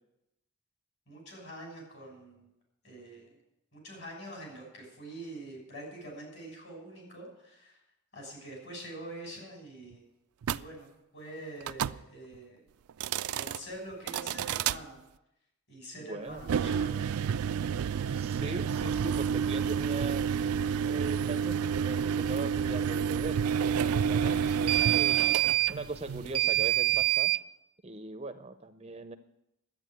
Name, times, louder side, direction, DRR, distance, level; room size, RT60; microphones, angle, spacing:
voice 1, 1.1-2.5 2.8-3.3 3.7-7.8 8.1-10.1 10.5-12.6 13.3-15.0 15.7-17.0 24.2-24.8, right 1 dB, 55° left, 0 dB, 6.2 m, -45 dB
sound 1, 10.4-10.6 11.6-12.0 12.9-13.6 14.1-14.8 16.4-27.4, right 9 dB, 85° right, 0.4 m, -28 dB
voice 2, 15.9-16.4 18.1-20.3 20.8-25.2 25.7-27.3 27.8-29.2, right 2 dB, 25° right, 9 dB, 0.5 m, -40 dB
11.5 x 8.7 x 9.2 m, 0.86 s
head